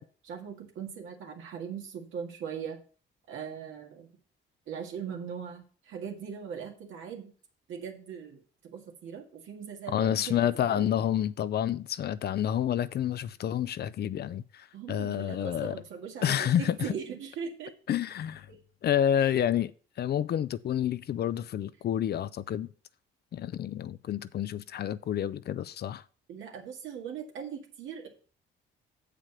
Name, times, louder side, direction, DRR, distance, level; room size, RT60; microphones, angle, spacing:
voice 1, 0.0-2.8 3.3-4.1 4.7-7.3 7.7-10.9 14.7-17.7 18.5-18.6 19.2-19.3 26.3-28.1, right 7 dB, 80° right, 1.9 m, -40 dB
voice 2, 9.9-15.8 16.2-16.9 17.9-18.5 18.8-19.7 20.0-22.7 23.3-26.0, left 10 dB, 55° left, 0.5 m, -29 dB
7.5 x 5.0 x 5.7 m
cardioid pair, 90°, 20 cm